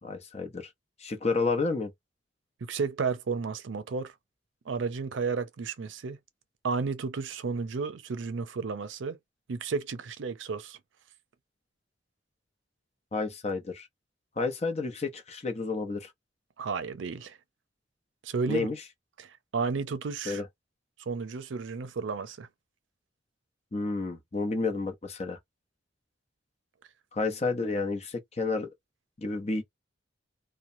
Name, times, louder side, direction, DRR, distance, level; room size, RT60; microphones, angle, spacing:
voice 1, 0.0-0.7 1.0-1.9 13.1-13.9 14.4-16.1 18.5-18.8 20.3-20.5 23.7-25.4 27.1-28.7 29.2-29.6, left 3 dB, 35° left, 0.7 m, -30 dB
voice 2, 2.6-4.1 4.7-6.2 6.6-9.2 9.5-10.8 16.6-17.4 18.2-18.7 19.2-20.4 21.1-22.5, right 5 dB, 90° right, 0.5 m, -32 dB
3.0 x 2.1 x 2.6 m
head